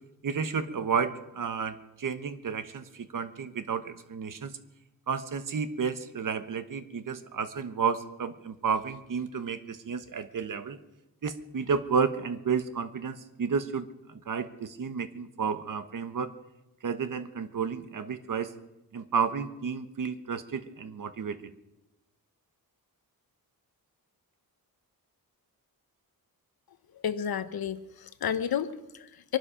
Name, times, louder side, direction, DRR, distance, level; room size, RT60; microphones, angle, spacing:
voice 1, 0.2-4.6 5.1-10.8 11.2-16.3 16.8-18.5 18.9-21.4, right 6 dB, 60° right, 10 dB, 1.2 m, -31 dB
voice 2, 27.0-29.4, left 8 dB, 80° left, 12 dB, 1.0 m, -31 dB
23.5 x 12.0 x 5.1 m, 0.95 s
wide cardioid pair, 140°, 36 cm